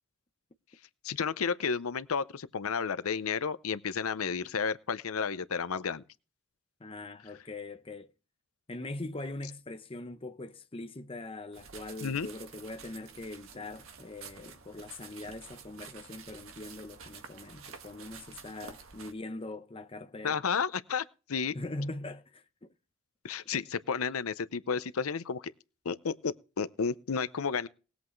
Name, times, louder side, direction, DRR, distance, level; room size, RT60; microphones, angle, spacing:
voice 1, 1.0-6.0 12.0-12.3 20.2-21.6 23.2-25.5 25.8-27.7, left 6 dB, 90° left, 0.6 m, -32 dB
voice 2, 6.8-8.1 8.7-20.4 21.5-22.4, left 2 dB, 25° left, 0.7 m, -42 dB
sound 1, 11.5-19.1, right 6 dB, 70° right, 1.6 m, -50 dB
19.5 x 8.1 x 3.1 m
head